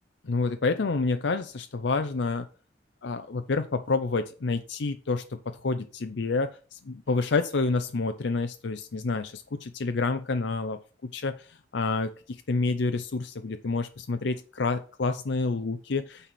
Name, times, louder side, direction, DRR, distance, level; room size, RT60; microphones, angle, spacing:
voice 1, 0.2-2.5 3.0-16.3, left 3 dB, 80° left, 8 dB, 0.6 m, -29 dB
9.1 x 4.2 x 6.0 m, 0.38 s
head